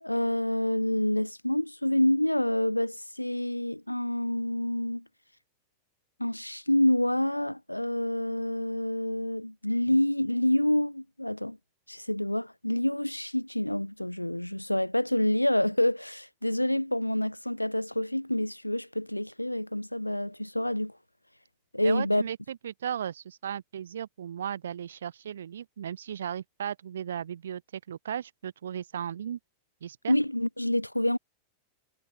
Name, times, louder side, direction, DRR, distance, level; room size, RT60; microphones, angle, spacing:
voice 1, 0.0-5.0 6.2-11.6 11.9-20.9 21.7-22.2 30.1-31.2, left 1 dB, 85° left, 0.4 m, -27 dB
voice 2, 21.8-29.4 29.8-30.1, right 9 dB, 65° right, 0.3 m, -36 dB
figure-of-eight pair, 90°, 0 cm